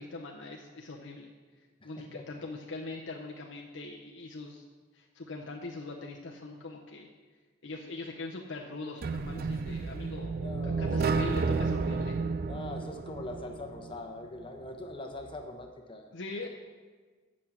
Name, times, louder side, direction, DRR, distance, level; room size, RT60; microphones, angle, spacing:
voice 1, 0.0-1.3 1.8-4.6 4.9-7.1 7.6-12.2 16.1-16.5, left 3 dB, 70° left, 0 dB, 0.8 m, -41 dB
voice 2, 1.8-2.3 10.3-11.3 12.4-16.1, left 2 dB, 25° left, 4 dB, 1.0 m, -42 dB
sound 1, 9.0-13.9, right 4 dB, 50° right, 0.4 m, -31 dB
7.9 x 6.2 x 7.2 m, 1.4 s
head